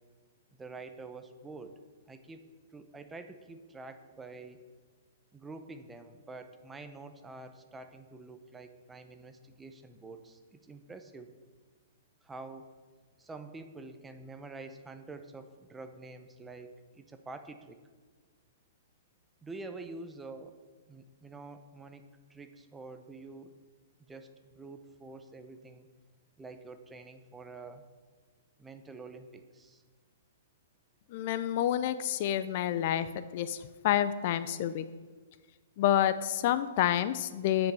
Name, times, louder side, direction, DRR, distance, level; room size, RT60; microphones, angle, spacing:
voice 1, 0.5-1.7 2.1-4.6 5.3-11.3 12.2-12.7 13.2-16.7 16.9-17.8 19.4-20.5 20.9-22.0 22.3-23.5 24.1-25.9 26.4-27.9 28.6-29.8, right 3 dB, 10° right, 8 dB, 0.7 m, -47 dB
voice 2, 31.1-33.1 33.3-34.8 35.8-37.7, left 11 dB, 50° left, 13 dB, 0.4 m, -28 dB
9.2 x 5.2 x 6.9 m, 1.4 s
hypercardioid pair, 135°, 0 cm